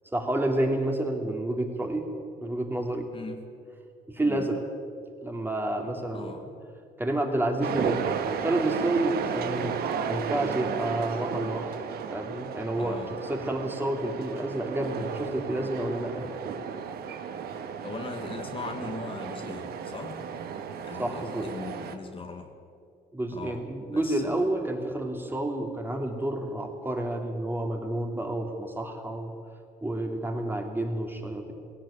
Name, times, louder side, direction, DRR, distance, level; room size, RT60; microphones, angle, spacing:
voice 1, 0.1-2.1 2.4-3.1 4.1-4.6 5.2-6.4 7.0-8.0 8.4-9.8 10.1-11.7 12.1-13.0 13.3-16.3 21.0-21.5 23.1-29.3 29.8-31.5, right 1 dB, 10° right, 3 dB, 2.9 m, -29 dB
sound 1, 7.6-22.0, right 7 dB, 65° right, 1.6 m, -34 dB
voice 2, 9.3-9.6 12.8-13.2 17.8-20.3 20.8-22.5 23.3-24.4, left 4 dB, 30° left, 4 dB, 1.6 m, -40 dB
18.5 x 17.0 x 8.9 m, 2.4 s
cardioid pair, 110°, 17 cm